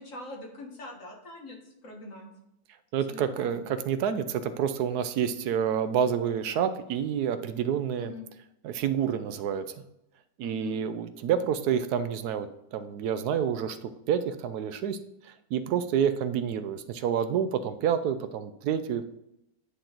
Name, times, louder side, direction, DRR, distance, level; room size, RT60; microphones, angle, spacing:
voice 1, 0.0-1.6 1.8-2.3 3.1-3.6 8.0-8.2 10.4-10.8, left 2 dB, 55° left, 0 dB, 1.7 m, -43 dB
voice 2, 2.9-8.1 8.6-9.8 10.4-19.1, right 8 dB, 80° right, 11 dB, 1.1 m, -28 dB
10.0 x 3.9 x 4.4 m, 0.83 s
omnidirectional pair, 1.7 m